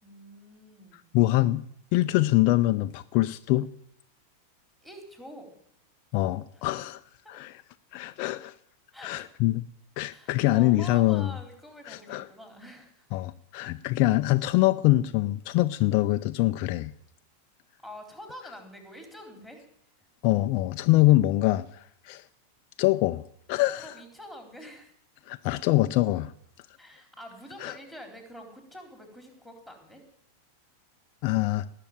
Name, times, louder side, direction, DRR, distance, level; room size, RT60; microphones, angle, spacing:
voice 1, 0.0-1.1 4.8-5.5 6.5-6.7 7.2-7.4 8.9-9.3 10.1-13.1 13.6-13.9 17.8-19.7 20.0-20.1 23.8-24.9 26.8-30.1, equal, 5° right, 3 dB, 3.9 m, -46 dB
voice 2, 1.1-1.6 1.9-3.7 6.1-7.0 7.3-7.5 7.9-8.5 9.0-9.6 10.0-11.3 11.9-12.2 13.1-16.9 20.2-22.3 22.8-23.2 23.5-23.9 25.3-26.3 27.6-27.7 31.2-31.7, left 17 dB, 45° left, 9 dB, 0.5 m, -24 dB
19.0 x 6.9 x 9.0 m, 0.70 s
figure-of-eight pair, 90°, 0 cm